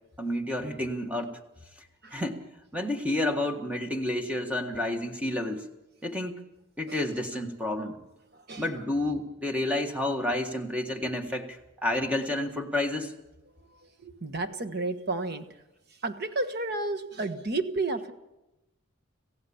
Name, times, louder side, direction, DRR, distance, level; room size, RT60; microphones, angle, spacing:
voice 1, 0.2-1.3 2.1-2.4 2.7-5.7 6.0-6.4 6.8-8.0 8.6-13.1, left 1 dB, 5° right, 4 dB, 1.6 m, -30 dB
voice 2, 8.3-8.8 13.7-15.5 16.0-18.1, right 2 dB, 45° right, 9 dB, 1.4 m, -32 dB
26.5 x 15.5 x 7.1 m, 1.0 s
head